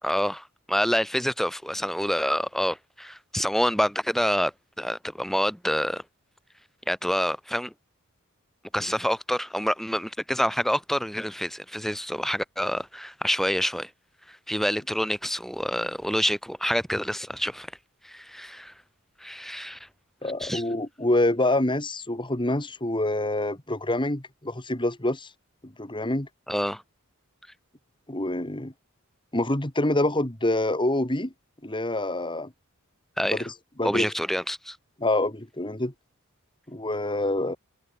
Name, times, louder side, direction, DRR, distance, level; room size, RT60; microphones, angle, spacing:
voice 1, 0.0-6.0 6.9-7.7 8.7-13.9 14.3-17.7 18.0-18.7 19.2-19.8 20.4-20.6 26.5-26.8 33.2-33.5 33.8-34.8, equal, ahead, 5.9 m, -27 dB
voice 2, 20.2-25.3 25.6-26.3 28.1-28.7 29.3-31.3 31.6-32.5 33.3-33.4 33.8-34.1 35.0-35.9 36.7-37.6, left 1 dB, 20° left, 2.5 m, -26 dB
head